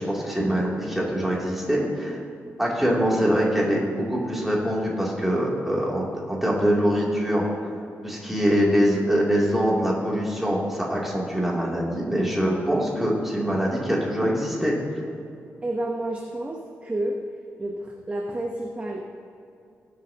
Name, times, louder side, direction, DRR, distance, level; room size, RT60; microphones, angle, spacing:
voice 1, 0.0-2.2 2.6-7.5 8.0-14.7, equal, 5° right, -5 dB, 2.9 m, -24 dB
voice 2, 15.6-17.2 17.6-19.1, right 1 dB, 25° right, 0 dB, 1.0 m, -30 dB
20.5 x 8.7 x 2.9 m, 2.5 s
cardioid pair, 105°, 5 cm